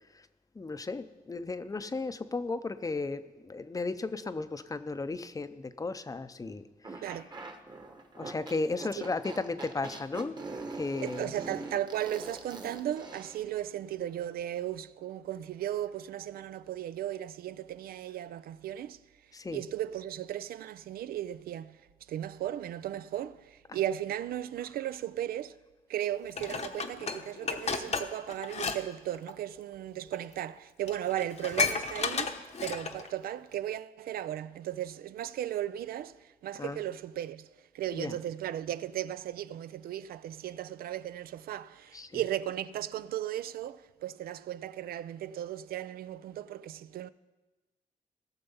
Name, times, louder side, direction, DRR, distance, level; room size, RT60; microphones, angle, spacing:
voice 1, 0.6-7.2 8.2-10.4 10.7-11.3 19.3-19.6 23.7-23.8 24.6-24.7 36.6-36.9 37.9-38.2 41.9-42.3, left 3 dB, 25° left, 0.6 m, -35 dB
sound 1, 6.8-13.4, right 3 dB, 30° right, 1.1 m, -42 dB
voice 2, 11.0-19.0 19.5-21.8 22.1-25.6 25.9-37.5 37.7-47.1, right 12 dB, 90° right, 0.4 m, -36 dB
Dishes pots and pans, 26.4-28.8 29.1-29.3 30.1-30.2 30.6-30.7 30.9-33.1 33.5-33.6, left 5 dB, 45° left, 0.9 m, -33 dB
17.5 x 6.9 x 5.5 m
cardioid pair, 105°, 15 cm